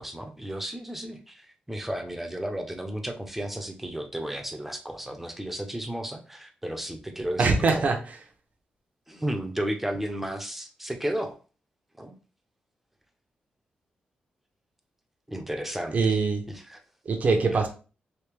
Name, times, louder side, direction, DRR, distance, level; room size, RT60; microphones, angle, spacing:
voice 1, 0.0-7.8 9.1-11.4 12.0-12.1 15.3-16.2 16.5-16.8, right 1 dB, 5° right, 5 dB, 0.6 m, -33 dB
voice 2, 7.4-8.0 15.9-16.4 17.1-17.7, right 4 dB, 50° right, 3 dB, 0.7 m, -22 dB
3.3 x 2.7 x 3.1 m, 0.36 s
cardioid pair, 105°, 3 cm